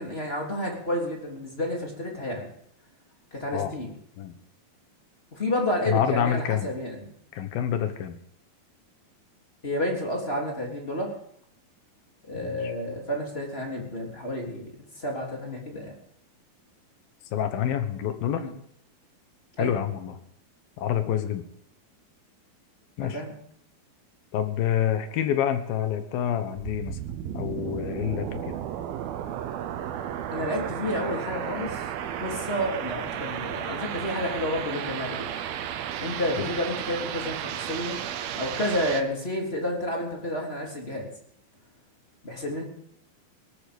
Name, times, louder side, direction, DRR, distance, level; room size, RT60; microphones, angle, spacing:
voice 1, 0.0-2.5 3.3-3.9 5.3-7.1 9.6-11.1 12.3-15.9 18.3-18.5 19.6-19.7 23.0-23.3 30.3-31.9 32.2-35.3 36.0-38.0 38.3-41.1 42.2-42.6, left 1 dB, 15° left, -1 dB, 3.1 m, -30 dB
voice 2, 5.9-6.7 7.3-8.2 12.4-12.7 17.3-18.5 19.6-20.2 20.8-21.4 23.0-23.2 24.3-27.0 27.3-28.6 36.4-36.5, left 10 dB, 75° left, 9 dB, 3.0 m, -27 dB
sound 1, 26.6-39.0, right 10 dB, 85° right, 2.9 m, -33 dB
18.5 x 12.5 x 5.3 m, 0.70 s
omnidirectional pair, 4.2 m